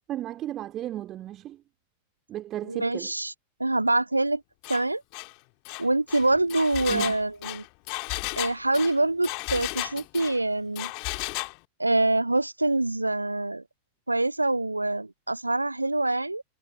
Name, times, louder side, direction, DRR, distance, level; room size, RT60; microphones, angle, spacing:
voice 1, 0.1-1.6 2.3-3.1 6.9-7.2, right 13 dB, 30° right, 2.2 m, -35 dB
voice 2, 2.7-3.3 3.6-4.4 4.7-5.0 5.8-7.6 8.4-10.9 11.8-13.6 14.1-16.4, right 2 dB, 85° right, 0.6 m, -25 dB
Engine, 4.6-4.8 5.1-5.3 5.6-10.4 10.8-11.6, left 37 dB, 45° left, 2.2 m, -34 dB
figure-of-eight pair, 90°, 0 cm